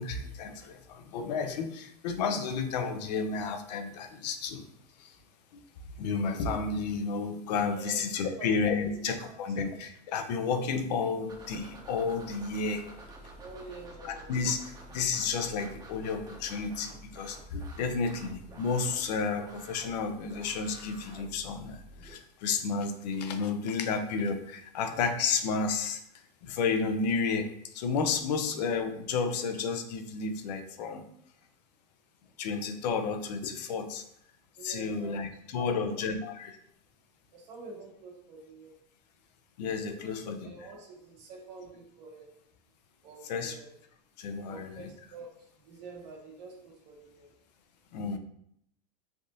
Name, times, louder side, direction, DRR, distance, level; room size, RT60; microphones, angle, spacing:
voice 1, 0.0-4.6 5.0-5.1 5.5-5.6 6.0-12.9 14.0-26.0 26.4-31.0 32.4-34.0 34.6-36.6 39.6-40.5 43.2-43.6 44.2-44.9 47.9-48.2, left 5 dB, 80° left, 7 dB, 0.5 m, -32 dB
voice 2, 7.8-8.6 9.3-9.4 13.4-14.3 34.6-35.2 35.5-36.0 37.3-38.7 40.0-42.3 43.0-43.8 44.4-47.3, right 2 dB, 75° right, -2 dB, 1.3 m, -47 dB
sound 1, 11.3-22.1, right 1 dB, 20° right, 0.7 m, -49 dB
3.4 x 2.5 x 2.6 m, 0.71 s
supercardioid pair, 120°, 21 cm